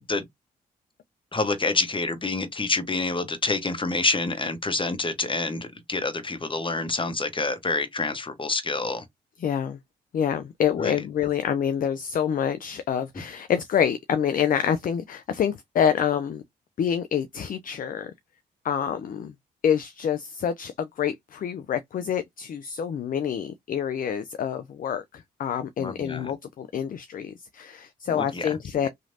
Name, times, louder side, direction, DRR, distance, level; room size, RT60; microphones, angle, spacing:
voice 1, 1.3-9.0 10.8-10.9 25.8-26.3 28.1-28.6 28.8-28.9, left 3 dB, 25° left, 1.0 m, -27 dB
voice 2, 9.4-9.8 10.1-16.4 16.8-18.1 18.6-19.3 19.6-28.9, left 8 dB, 40° left, 0.4 m, -27 dB
3.0 x 2.5 x 2.7 m
hypercardioid pair, 40°, 21 cm